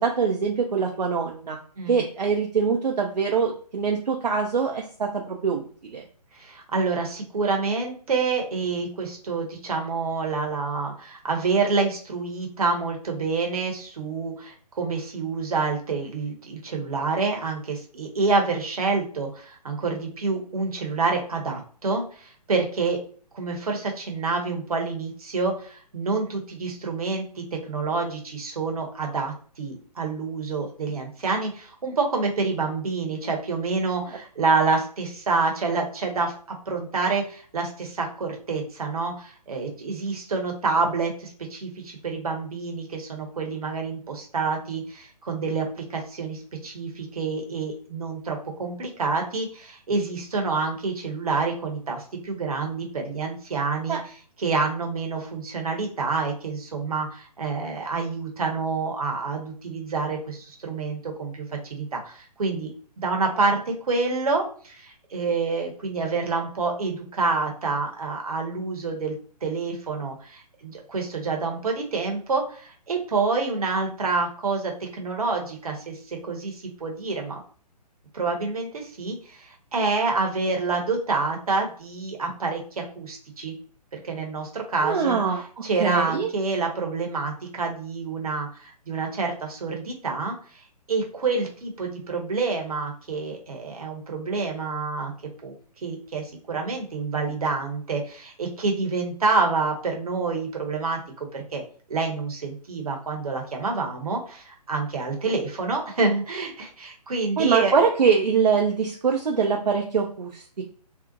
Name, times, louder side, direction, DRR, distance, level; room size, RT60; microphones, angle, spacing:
voice 1, 0.0-1.6 1.9-6.0 53.9-54.0 84.8-85.4 85.8-86.3 107.4-110.6, right 6 dB, 75° right, 1 dB, 0.4 m, -23 dB
voice 2, 6.3-23.0 23.3-54.0 54.4-69.1 69.4-77.4 78.1-83.5 83.9-85.2 85.6-90.6 90.9-95.1 95.4-95.5 95.8-101.0 101.3-101.6 101.9-107.7, right 4 dB, 60° right, 2 dB, 0.8 m, -27 dB
2.6 x 2.0 x 2.6 m, 0.44 s
figure-of-eight pair, 135°, 21 cm